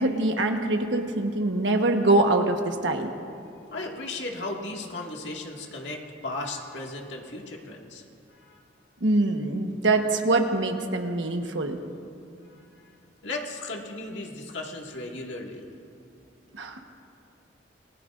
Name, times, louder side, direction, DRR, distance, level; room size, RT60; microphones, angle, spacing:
voice 1, 0.0-3.1 9.0-11.8 16.5-16.8, right 2 dB, 75° right, 4 dB, 1.3 m, -24 dB
voice 2, 3.7-8.0 8.3-8.6 12.5-12.6 13.2-15.7, left 2 dB, 75° left, -1 dB, 2.1 m, -36 dB
26.5 x 20.0 x 2.6 m, 2.5 s
head